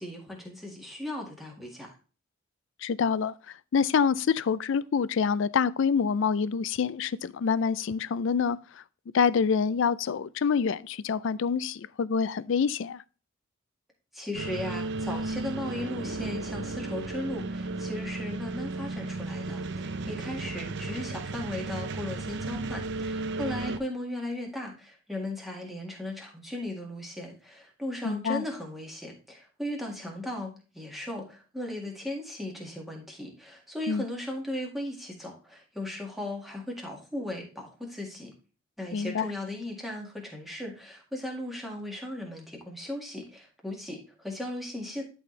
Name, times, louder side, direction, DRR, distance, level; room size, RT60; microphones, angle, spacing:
voice 1, 0.0-1.9 14.1-38.3 38.8-45.0, left 1 dB, ahead, 1.8 m, -37 dB
voice 2, 2.8-3.3 3.7-8.6 9.1-13.0 28.0-28.4 33.9-34.0 38.9-39.3, left 6 dB, 60° left, 0.4 m, -26 dB
sound 1, 14.3-23.8, right 3 dB, 55° right, 0.5 m, -34 dB
11.5 x 4.2 x 3.2 m
head